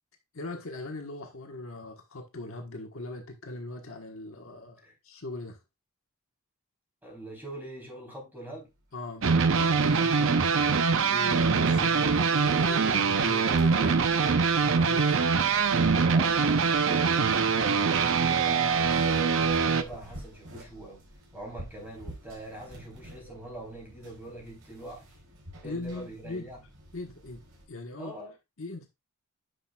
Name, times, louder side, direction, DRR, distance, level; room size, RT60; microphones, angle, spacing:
voice 1, 0.3-5.6 8.9-10.7 11.1-14.3 14.7-15.3 25.6-26.5 26.9-27.4 27.7-28.1 28.6-28.9, left 2 dB, 65° left, 1.4 m, -40 dB
voice 2, 7.0-8.7 16.1-17.3 17.8-21.0 21.3-25.2 25.6-26.6 28.0-28.3, right 1 dB, 10° right, 3.8 m, -43 dB
sound 1, 8.7-27.7, right 1 dB, 90° right, 4.1 m, -50 dB
sound 2, 9.2-19.8, right 5 dB, 60° right, 0.7 m, -23 dB
9.6 x 5.9 x 2.3 m
head